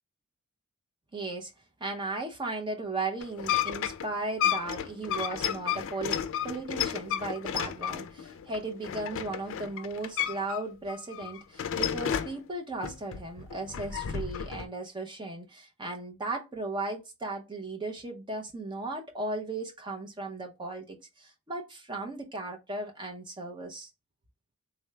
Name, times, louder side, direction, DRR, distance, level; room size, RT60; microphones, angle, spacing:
voice 1, 1.1-1.5 1.8-23.9, right 2 dB, 20° right, 0.5 m, -36 dB
sound 1, 3.2-10.6 10.9-12.4 12.8-14.7, left 9 dB, 60° left, 0.4 m, -32 dB
3.7 x 2.2 x 3.1 m
head